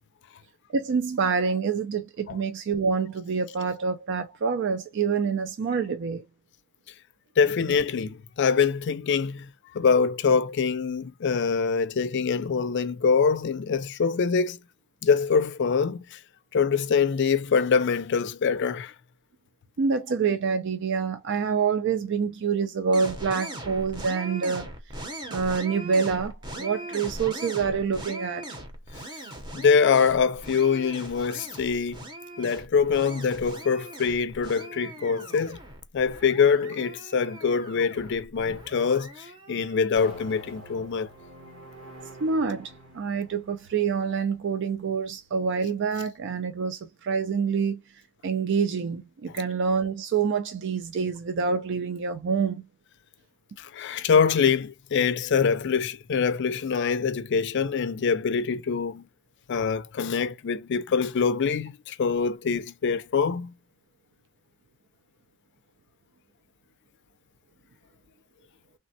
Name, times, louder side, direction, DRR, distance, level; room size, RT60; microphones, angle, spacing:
voice 1, 0.7-6.2 19.8-24.7 25.3-28.5 42.2-47.8 48.2-52.6, right 5 dB, 60° right, 0.4 m, -27 dB
voice 2, 7.4-14.6 15.0-16.2 16.5-18.9 29.5-32.1 32.4-35.6 35.9-41.1 53.6-59.1 59.5-63.5, left 6 dB, 60° left, 0.4 m, -24 dB
sound 1, 22.9-39.9, right 1 dB, 20° right, 0.7 m, -40 dB
sound 2, 40.0-46.4, right 1 dB, 80° right, 1.3 m, -48 dB
3.3 x 2.1 x 2.6 m
head